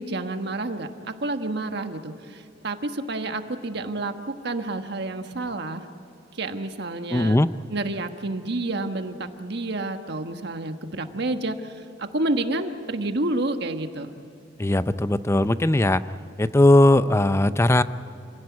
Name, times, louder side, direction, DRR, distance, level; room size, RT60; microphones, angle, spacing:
voice 1, 0.0-4.1 4.4-5.8 6.4-7.4 7.7-14.1, right 2 dB, 65° right, 7 dB, 1.4 m, -29 dB
voice 2, 7.1-7.5 14.6-16.0 16.4-17.8, left 1 dB, 15° left, 14 dB, 0.5 m, -18 dB
27.0 x 17.0 x 9.5 m, 2.8 s
head